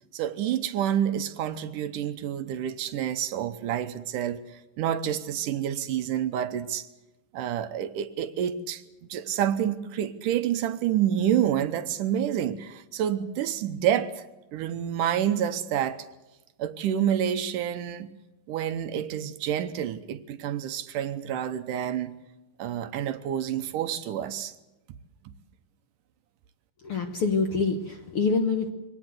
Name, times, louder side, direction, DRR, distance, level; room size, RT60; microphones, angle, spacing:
voice 1, 0.1-6.9 7.3-8.8 9.1-14.2 14.5-16.1 16.6-18.1 18.5-22.2 22.6-24.5, right 10 dB, 75° right, 2.4 m, -28 dB
voice 2, 26.8-28.7, left 4 dB, 55° left, 1.6 m, -26 dB
24.0 x 18.0 x 8.0 m
omnidirectional pair, 4.0 m